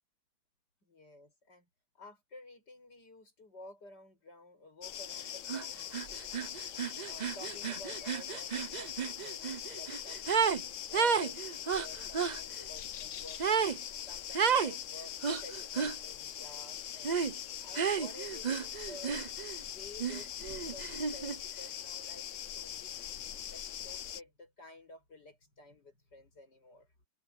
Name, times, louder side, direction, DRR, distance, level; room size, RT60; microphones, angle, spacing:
voice 1, 0.8-1.7 2.0-6.6 7.0-13.6 14.1-17.2 17.6-19.2 19.7-23.2 23.5-26.9, left 1 dB, 80° left, 8.8 m, -53 dB
Grillen - viele Grillen Tag, 4.8-24.2, left 10 dB, 60° left, 0.9 m, -42 dB
sound 1, 5.5-5.6 5.9-10.6 10.9-12.4 13.4-13.8 14.3-14.7 15.2-16.0 17.0-17.3 17.7-19.6 20.0-21.4, right 6 dB, 50° right, 0.5 m, -32 dB
omnidirectional pair, 1.8 m